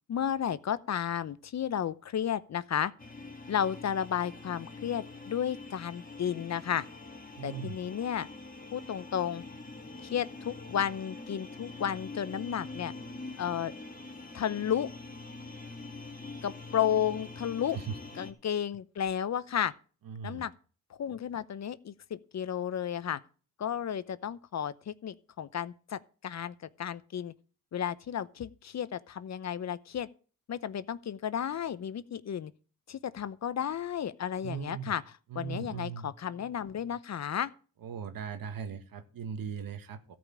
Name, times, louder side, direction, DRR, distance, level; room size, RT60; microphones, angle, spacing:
voice 1, 0.1-2.9 3.5-6.9 7.4-8.3 8.7-9.4 10.0-12.9 13.4-13.7 14.3-14.9 16.4-17.8 18.2-19.7 20.2-20.5 21.0-23.2 23.6-27.3 27.7-30.1 30.5-32.5 32.9-35.0 35.3-37.5, left 9 dB, 45° left, 0.8 m, -33 dB
sound 1, 3.0-18.3, left 3 dB, 20° left, 2.6 m, -45 dB
voice 2, 7.4-7.7 17.7-18.0 20.0-20.5 34.4-34.9 35.3-36.1 37.8-40.2, right 7 dB, 65° right, 1.7 m, -39 dB
13.5 x 5.2 x 8.8 m
cardioid pair, 90°, 37 cm